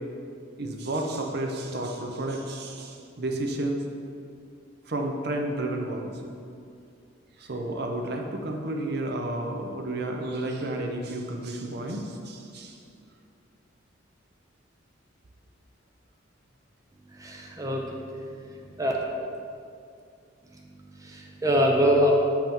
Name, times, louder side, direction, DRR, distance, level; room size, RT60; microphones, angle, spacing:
voice 1, 0.6-3.8 4.9-6.1 7.4-12.8, right 1 dB, 55° right, 2 dB, 0.6 m, -31 dB
voice 2, 17.2-17.8 18.8-18.9 21.0-22.1, equal, 15° right, -1 dB, 0.7 m, -23 dB
7.2 x 5.4 x 4.5 m, 2.4 s
head